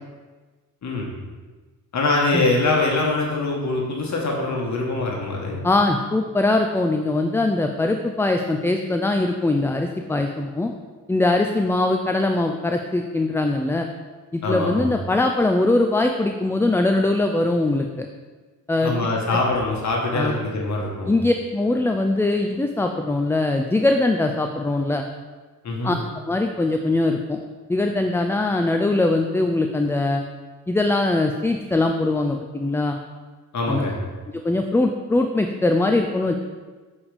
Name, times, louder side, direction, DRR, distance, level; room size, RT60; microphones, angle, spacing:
voice 1, 1.9-5.6 14.4-14.9 18.8-21.1 25.6-26.0 33.5-34.0, left 2 dB, 50° left, -1 dB, 1.7 m, -23 dB
voice 2, 5.6-10.7 11.1-13.9 14.3-18.1 18.7-18.9 20.1-20.4 21.1-25.0 25.8-26.0 26.3-27.4 27.7-30.2 30.7-33.0 33.7-33.9 34.3-36.4, left 2 dB, 5° left, 5 dB, 0.4 m, -21 dB
7.0 x 4.9 x 5.2 m, 1.3 s
cardioid pair, 95°, 36 cm